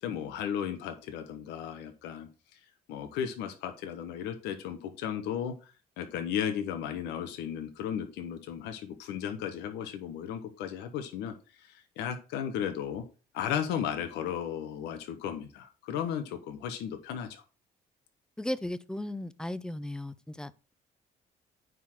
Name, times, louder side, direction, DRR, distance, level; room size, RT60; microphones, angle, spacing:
voice 1, 0.0-2.3 2.9-13.0 13.3-17.4, left 9 dB, 85° left, 1.2 m, -35 dB
voice 2, 18.4-20.7, left 1 dB, 5° left, 0.6 m, -36 dB
9.4 x 3.9 x 6.0 m
cardioid pair, 110°, 17 cm